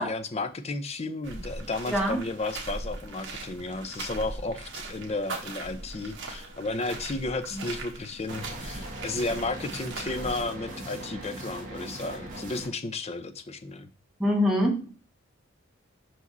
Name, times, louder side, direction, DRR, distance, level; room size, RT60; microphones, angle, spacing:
voice 1, 0.0-13.9, left 2 dB, 30° left, 9 dB, 0.5 m, -33 dB
sound 1, 1.2-10.4, right 2 dB, 55° right, 1.5 m, -40 dB
voice 2, 1.9-2.2 7.5-7.6 14.2-14.9, equal, ahead, -1 dB, 1.5 m, -25 dB
sound 2, 8.3-12.7, right 1 dB, 40° right, 1.7 m, -40 dB
5.7 x 4.9 x 4.0 m, 0.38 s
head